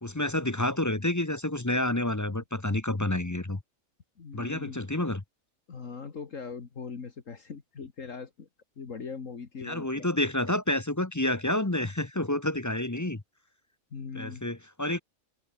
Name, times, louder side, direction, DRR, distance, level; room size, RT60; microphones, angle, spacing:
voice 1, 0.0-3.6 4.3-5.2 9.6-13.2 14.1-15.0, left 1 dB, 15° left, 0.9 m, -29 dB
voice 2, 4.2-4.8 5.7-8.5 8.8-10.1 13.9-14.4, left 5 dB, 65° left, 2.2 m, -40 dB
omnidirectional pair, 1.5 m